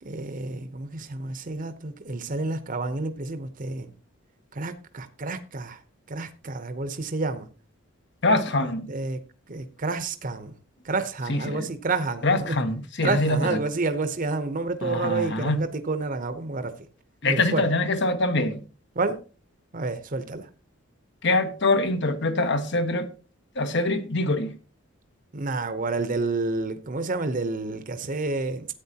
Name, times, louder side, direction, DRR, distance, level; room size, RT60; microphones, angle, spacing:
voice 1, 0.0-3.9 4.5-5.8 6.1-7.5 8.6-9.2 9.5-10.5 10.8-12.6 13.0-16.9 17.3-17.7 18.9-19.2 19.7-20.5 25.3-28.7, right 3 dB, 40° right, 0.8 m, -29 dB
voice 2, 8.2-8.9 11.3-11.6 12.2-13.4 14.8-15.6 17.2-18.6 21.2-23.1 23.6-24.5, left 2 dB, 60° left, 1.2 m, -24 dB
13.5 x 8.9 x 2.9 m
head